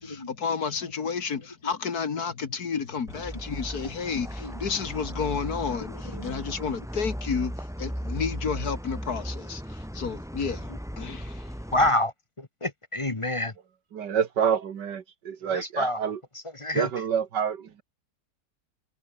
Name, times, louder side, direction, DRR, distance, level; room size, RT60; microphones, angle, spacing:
voice 1, 0.0-10.7 11.0-11.5, left 6 dB, 60° left, 2.3 m, -31 dB
sound 1, 3.1-11.9, equal, ahead, 5.7 m, -36 dB
voice 2, 11.7-12.1 12.6-13.5 15.8-16.0 16.6-16.9, left 1 dB, 20° left, 1.1 m, -26 dB
voice 3, 13.9-16.2 16.7-17.8, right 7 dB, 80° right, 2.1 m, -27 dB
omnidirectional pair, 1.8 m